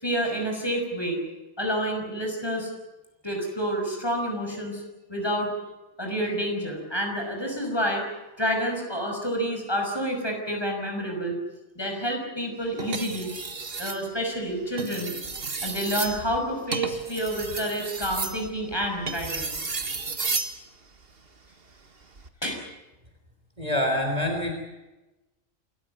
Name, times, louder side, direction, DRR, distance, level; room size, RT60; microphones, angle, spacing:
voice 1, 0.0-1.2 1.6-2.7 3.2-4.8 5.1-5.5 6.0-8.1 8.4-11.4 11.8-13.4 13.8-15.1 15.6-19.7 22.4-22.6, equal, 20° left, 2 dB, 5.9 m, -29 dB
sound 1, 12.8-14.0 14.7-20.6 22.0-22.3, right 4 dB, 45° right, 1.8 m, -32 dB
voice 2, 23.6-24.5, left 1 dB, 30° right, 2 dB, 3.8 m, -25 dB
28.0 x 14.5 x 9.3 m, 1.0 s
omnidirectional pair, 1.4 m